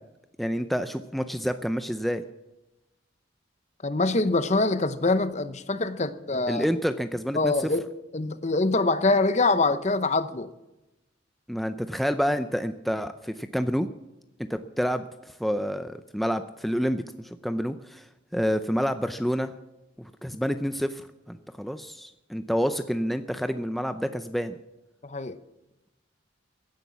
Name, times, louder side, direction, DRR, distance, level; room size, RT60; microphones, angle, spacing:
voice 1, 0.4-2.2 6.5-7.7 11.5-13.9 14.5-18.1 18.3-19.5 20.0-24.6, equal, ahead, 9 dB, 0.5 m, -28 dB
voice 2, 3.8-6.7 7.3-7.9 8.1-10.5 25.0-25.4, left 3 dB, 35° left, 13 dB, 0.9 m, -24 dB
16.0 x 10.5 x 7.2 m, 0.97 s
head